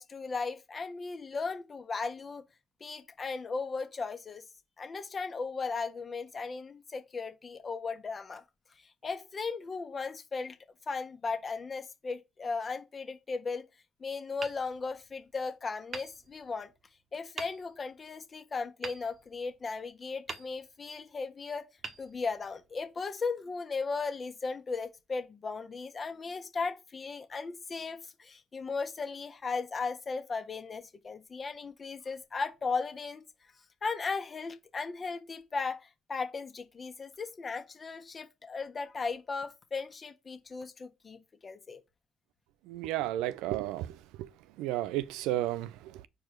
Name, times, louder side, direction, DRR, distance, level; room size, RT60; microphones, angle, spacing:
voice 1, 0.0-2.4 2.8-4.4 4.8-8.4 8.8-10.6 10.9-13.7 14.0-16.7 17.1-21.7 22.0-33.2 33.8-41.8, left 4 dB, 40° left, 1.2 m, -36 dB
Hammer, 14.4-15.4 15.9-16.8 17.4-18.0 18.8-19.8 20.3-21.0 21.8-22.8, right 4 dB, 45° right, 1.1 m, -45 dB
voice 2, 42.7-44.3 44.6-46.0, right 14 dB, 75° right, 0.4 m, -33 dB
4.6 x 4.3 x 4.8 m
hypercardioid pair, 55°, 0 cm